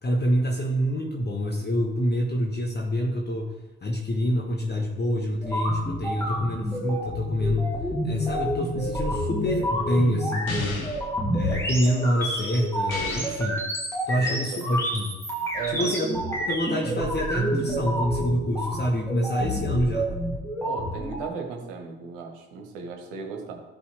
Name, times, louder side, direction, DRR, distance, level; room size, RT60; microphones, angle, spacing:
voice 1, 0.0-7.8 8.0-10.9 11.3-13.6 14.1-15.2 15.7-20.2, equal, 25° left, 0 dB, 1.2 m, -26 dB
sound 1, 5.4-21.3, equal, 5° left, 2.4 m, -29 dB
sound 2, 10.5-11.1 12.9-13.5, left 3 dB, 85° left, 1.0 m, -34 dB
voice 2, 14.1-14.6 15.5-16.0 20.6-23.6, right 5 dB, 70° right, 3 dB, 1.5 m, -36 dB
13.5 x 5.5 x 3.3 m, 1.1 s
figure-of-eight pair, 50°, 40 cm